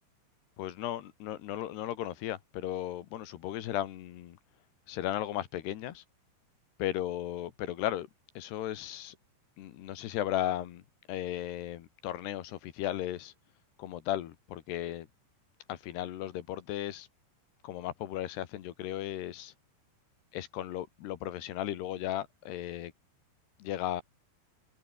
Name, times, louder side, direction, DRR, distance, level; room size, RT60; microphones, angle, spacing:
voice 1, 0.6-4.4 4.9-6.0 6.8-8.1 8.4-9.2 9.6-10.8 11.1-13.3 13.8-15.1 15.7-17.1 17.6-19.5 20.3-22.9 23.6-24.0, left 12 dB, 75° left, 3.6 m, -35 dB
omnidirectional pair, 4.8 m